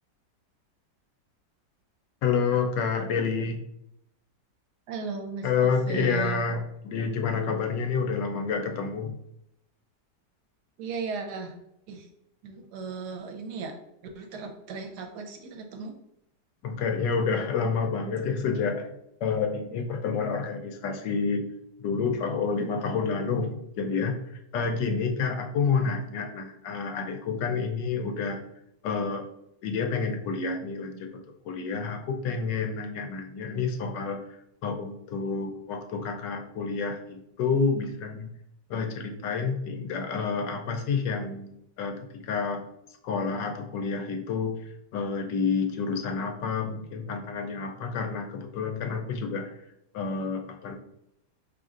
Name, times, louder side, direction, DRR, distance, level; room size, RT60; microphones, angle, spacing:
voice 1, 2.2-3.6 5.4-9.2 16.6-18.9 19.2-21.4 21.8-28.4 28.8-29.3 29.6-38.3 38.7-41.5 41.8-42.6 43.0-49.6 49.9-50.8, left 5 dB, 90° left, 4 dB, 1.3 m, -29 dB
voice 2, 4.9-6.4 10.8-11.6 11.9-12.1 12.4-13.7 14.2-15.9, right 5 dB, 75° right, 4 dB, 1.2 m, -36 dB
5.2 x 3.1 x 2.4 m, 0.79 s
omnidirectional pair, 1.8 m